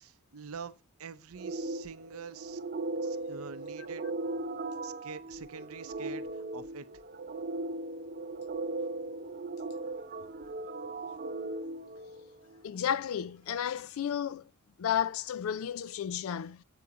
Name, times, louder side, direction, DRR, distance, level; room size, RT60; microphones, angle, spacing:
voice 1, 0.0-2.6 3.0-4.0 4.8-6.9, right 5 dB, 85° right, 0.6 m, -45 dB
sound 1, 1.4-12.7, right 2 dB, 45° right, 0.6 m, -38 dB
voice 2, 12.6-14.5 14.8-16.6, left 9 dB, 75° left, 0.4 m, -32 dB
7.9 x 4.8 x 4.0 m
head